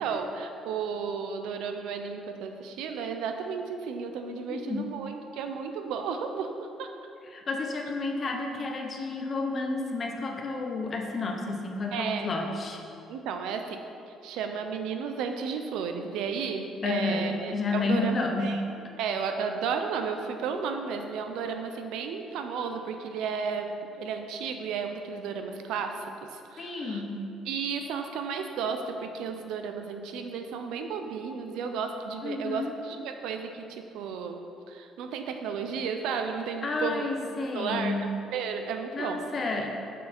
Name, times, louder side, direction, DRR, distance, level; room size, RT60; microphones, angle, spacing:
voice 1, 0.0-6.5 6.8-6.9 11.9-12.3 13.1-13.8 14.2-18.6 19.0-27.0 27.5-37.1 37.5-38.0 38.3-39.2, right 6 dB, 85° right, 6 dB, 0.6 m, -33 dB
voice 2, 4.5-4.9 7.3-12.8 16.8-18.6 26.6-27.3 32.2-32.7 36.6-38.1 38.9-39.7, left 3 dB, 30° left, 2 dB, 0.8 m, -31 dB
6.5 x 6.4 x 4.4 m, 2.6 s
cardioid pair, 150°, 0 cm